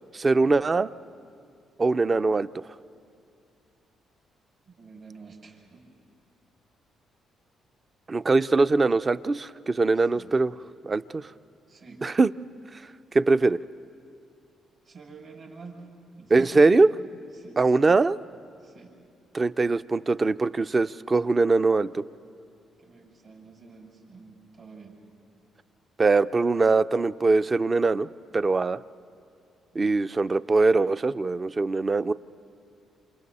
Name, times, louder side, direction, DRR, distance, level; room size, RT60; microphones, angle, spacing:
voice 1, 0.1-0.9 1.8-2.5 8.1-10.5 10.8-11.3 12.0-12.3 12.7-12.8 13.1-13.6 16.3-16.9 17.6-18.2 19.3-22.0 26.0-28.1 28.3-28.8 29.7-32.1, right 3 dB, 30° right, 14 dB, 0.4 m, -22 dB
voice 2, 4.7-5.8 9.9-10.3 11.7-12.0 14.8-15.9 16.2-17.1 17.3-17.6 18.6-18.9 22.8-25.0 29.7-29.9, right 4 dB, 60° right, -1 dB, 6.3 m, -47 dB
28.5 x 27.5 x 4.2 m, 2.4 s
cardioid pair, 90°, 0 cm